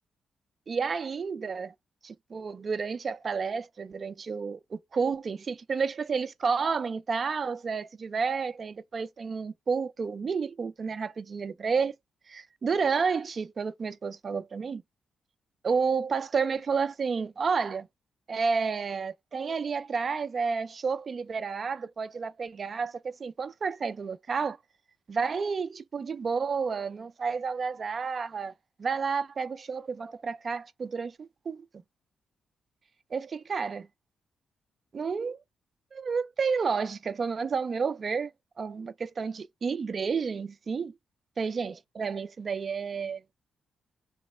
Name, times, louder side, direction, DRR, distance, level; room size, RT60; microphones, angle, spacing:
voice 1, 0.7-1.7 2.0-11.9 12.3-14.8 15.6-17.9 18.3-24.6 25.1-28.5 28.8-31.1 31.5-31.6 33.1-33.9 34.9-35.4 35.9-38.3 38.6-40.9 41.4-43.2, right 5 dB, 35° right, 0.3 m, -30 dB
3.1 x 3.0 x 4.3 m
wide cardioid pair, 170°, 0 cm